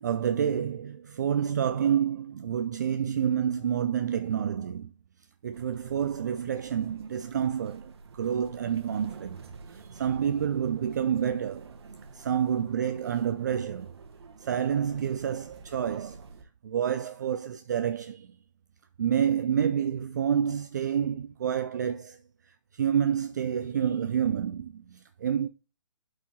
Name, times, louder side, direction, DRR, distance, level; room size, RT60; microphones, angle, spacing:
voice 1, 0.0-4.9 5.4-11.7 12.1-14.0 14.4-16.2 16.6-18.3 19.0-22.2 22.7-25.5, right 8 dB, 35° right, 0.4 m, -28 dB
sound 1, 5.5-16.4, right 4 dB, 50° right, 1.2 m, -49 dB
11.5 x 4.8 x 2.8 m
figure-of-eight pair, 135°, 17 cm